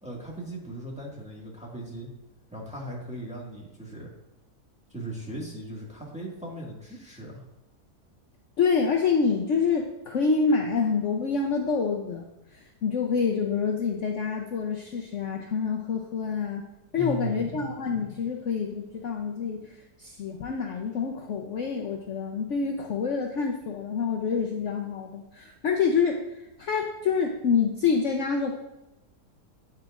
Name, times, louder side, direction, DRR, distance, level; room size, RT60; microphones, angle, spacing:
voice 1, 0.0-2.1 2.5-4.1 4.9-7.4 16.9-17.8, right 1 dB, 5° right, -4 dB, 1.7 m, -38 dB
voice 2, 8.6-12.3 12.5-16.6 16.9-28.5, left 5 dB, 60° left, 1 dB, 0.9 m, -27 dB
8.8 x 8.8 x 2.5 m, 0.98 s
omnidirectional pair, 1.7 m